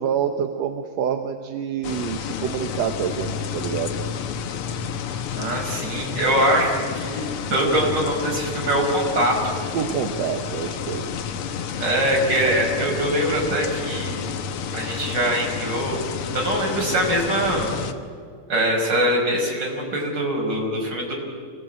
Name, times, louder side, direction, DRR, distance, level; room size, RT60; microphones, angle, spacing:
voice 1, 0.0-4.0 9.7-11.3, right 8 dB, 65° right, 6 dB, 1.9 m, -27 dB
sound 1, 1.8-17.9, left 7 dB, 65° left, 1.4 m, -30 dB
voice 2, 5.3-9.4 11.8-14.3 14.7-16.0 16.3-17.8 18.5-21.1, right 1 dB, 30° right, 0 dB, 5.7 m, -23 dB
27.0 x 18.5 x 8.7 m, 2.1 s
omnidirectional pair, 3.8 m